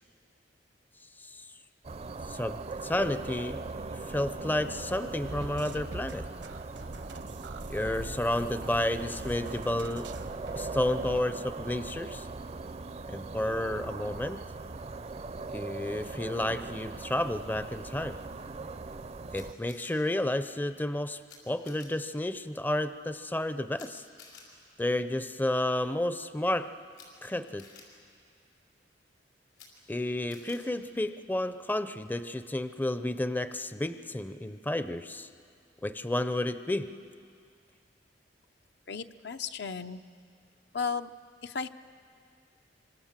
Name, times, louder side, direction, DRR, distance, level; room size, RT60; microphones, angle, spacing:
sound 1, 1.8-19.5, right 3 dB, 35° right, 0.5 m, -40 dB
voice 1, 2.3-3.6 4.1-6.3 7.7-10.1 10.5-12.3 13.1-14.4 15.5-18.2 19.3-24.0 24.8-26.7 27.2-27.7 29.9-35.3 35.8-36.9, left 1 dB, 10° left, 11 dB, 0.5 m, -31 dB
sound 2, 5.2-11.2, right 2 dB, 75° right, 1.0 m, -43 dB
Camera, 19.3-19.9 21.3-21.4 21.6-21.9 23.7-23.9 24.2-24.4 26.9-27.1 27.6-27.8 29.5-29.7 30.3-30.6, left 6 dB, 85° left, 5.9 m, -52 dB
voice 2, 38.9-40.0 40.7-41.1 41.4-41.7, left 5 dB, 65° left, 9 dB, 0.7 m, -34 dB
26.0 x 25.0 x 7.4 m, 2.3 s
head